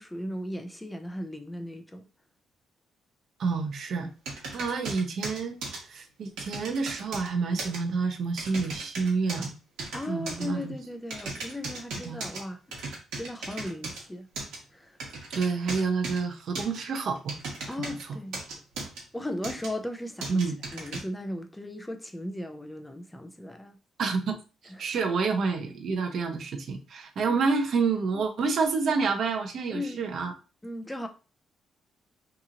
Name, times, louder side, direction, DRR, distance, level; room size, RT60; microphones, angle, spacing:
voice 1, 0.0-2.1 9.9-14.3 14.7-15.0 17.7-18.4 19.1-20.4 20.7-23.8 24.7-24.9 27.3-27.5 29.7-30.0 30.6-31.1, left 1 dB, 10° left, 0.4 m, -37 dB
voice 2, 3.4-4.1 4.5-5.6 5.9-9.6 10.1-10.7 12.1-12.3 15.3-17.4 20.3-20.6 24.0-24.4 24.6-30.3, right 4 dB, 60° right, 0.6 m, -28 dB
sound 1, 4.2-5.8 6.4-7.3 7.6-7.8 8.4-9.5 9.8-10.4 11.1-12.4 12.7-14.0 14.3-14.6 15.0-16.2 16.5-18.0 18.3-19.0 19.4-19.7 20.2-21.0, right 3 dB, 90° right, 1.1 m, -36 dB
2.9 x 2.7 x 2.4 m
cardioid pair, 90°, 0 cm